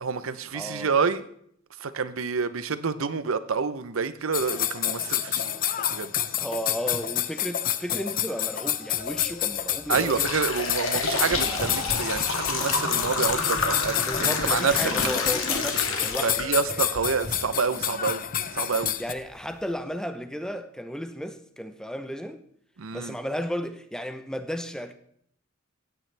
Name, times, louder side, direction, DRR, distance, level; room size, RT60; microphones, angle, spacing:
voice 1, 0.0-1.3 1.8-5.5 5.9-6.1 9.9-14.7 16.2-18.2 18.5-18.9 22.8-23.1, right 5 dB, 85° right, 0.7 m, -28 dB
voice 2, 0.5-0.9 6.4-10.3 14.0-16.4 19.0-22.4 22.9-24.9, equal, 5° left, 0.7 m, -34 dB
sound 1, 4.3-19.1, left 10 dB, 45° left, 0.6 m, -29 dB
sound 2, 9.2-9.3 9.7-16.9 17.3-17.4 18.3-18.4 18.9-19.0 19.4-19.6, left 3 dB, 80° left, 1.8 m, -29 dB
sound 3, 10.0-17.8, equal, 25° left, 3.6 m, -40 dB
16.0 x 9.2 x 3.4 m
head